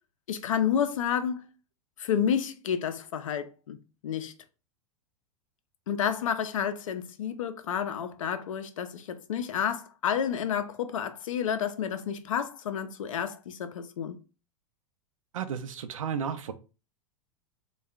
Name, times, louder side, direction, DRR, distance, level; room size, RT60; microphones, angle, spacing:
voice 1, 0.3-1.5 2.0-3.8 4.0-4.3 5.9-14.2, left 8 dB, 70° left, 0.5 m, -30 dB
voice 2, 15.3-16.5, right 7 dB, 70° right, 0.5 m, -33 dB
3.4 x 2.3 x 3.5 m
figure-of-eight pair, 90°, 17 cm